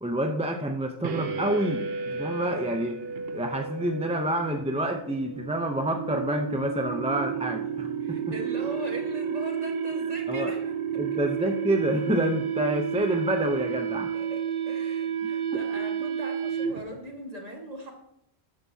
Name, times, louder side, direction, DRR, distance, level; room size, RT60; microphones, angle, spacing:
voice 1, 0.0-3.0 3.3-8.2 10.3-10.5 11.0-14.1 15.2-15.9, right 1 dB, 10° right, 4 dB, 0.5 m, -28 dB
sound 1, 1.0-17.0, right 7 dB, 65° right, 0.9 m, -31 dB
voice 2, 8.0-11.2 14.1-14.4 14.7-17.9, equal, 35° right, 1 dB, 1.9 m, -39 dB
13.0 x 9.8 x 2.8 m, 0.76 s
omnidirectional pair, 1.1 m